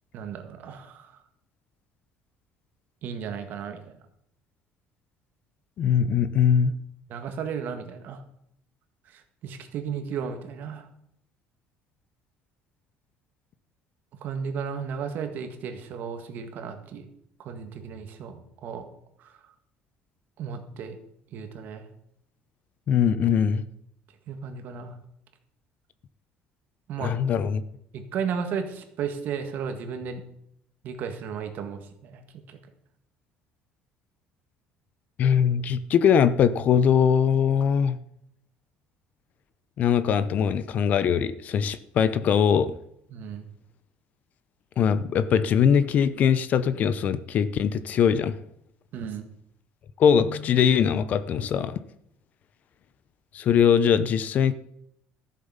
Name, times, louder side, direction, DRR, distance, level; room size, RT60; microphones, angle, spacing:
voice 1, 0.1-1.2 3.0-4.0 7.1-8.2 9.1-10.9 14.2-17.1 17.4-18.8 19.2-19.5 20.4-21.0 21.3-21.9 24.3-25.0 26.9-27.2 27.9-30.2 30.8-32.2 32.5-32.6 43.1-43.4 48.9-49.3, right 6 dB, 55° right, 7 dB, 1.7 m, -34 dB
voice 2, 5.8-6.7 22.9-23.6 27.0-27.6 35.2-38.0 39.8-42.8 44.8-48.4 50.0-51.8 53.3-54.5, left 7 dB, 45° left, 15 dB, 0.6 m, -21 dB
13.5 x 7.6 x 5.5 m, 0.73 s
cardioid pair, 150°, 4 cm